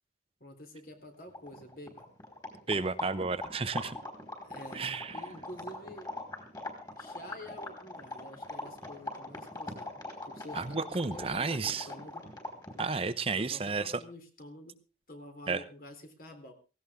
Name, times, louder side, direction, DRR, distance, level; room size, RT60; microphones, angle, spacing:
voice 1, 0.4-2.1 4.4-6.1 7.0-12.2 13.3-14.8 15.1-16.5, left 1 dB, 50° left, 5 dB, 3.5 m, -48 dB
sound 1, 1.0-1.1 1.3-13.0, left 2 dB, 25° left, 4.6 m, -42 dB
voice 2, 2.7-4.0 4.7-5.1 10.5-11.9 12.8-13.9 15.5-15.6, right 4 dB, 30° right, 12 dB, 0.8 m, -32 dB
17.0 x 17.0 x 3.6 m, 0.33 s
head